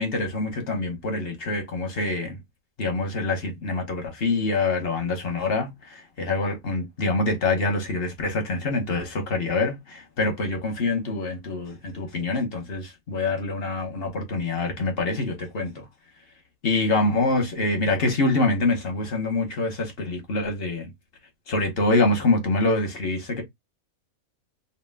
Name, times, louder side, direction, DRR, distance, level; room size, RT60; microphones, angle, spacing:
voice 1, 0.0-2.4 2.8-15.9 16.6-20.9 21.5-23.4, left 2 dB, 50° left, 1.0 m, -25 dB
2.6 x 2.1 x 3.3 m
omnidirectional pair, 1.4 m